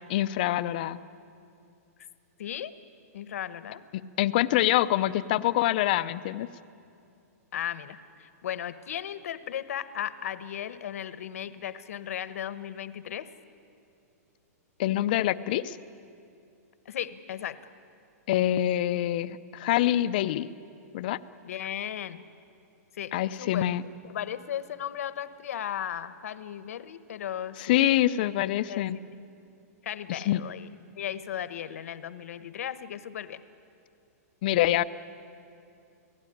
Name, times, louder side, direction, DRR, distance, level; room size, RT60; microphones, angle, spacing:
voice 1, 0.1-1.0 4.2-6.5 14.8-15.8 18.3-20.5 20.9-21.2 23.1-23.8 27.6-29.0 30.1-30.4 34.4-34.8, left 13 dB, 35° left, 14 dB, 0.6 m, -25 dB
voice 2, 2.4-2.7 3.1-3.8 7.5-13.3 16.8-17.6 21.4-22.2 22.9-23.1 23.4-23.7 24.0-27.8 28.1-28.9 29.8-30.7 31.0-33.4, left 10 dB, 65° left, 14 dB, 1.1 m, -36 dB
29.0 x 17.5 x 10.0 m, 2.6 s
hypercardioid pair, 175°, 9 cm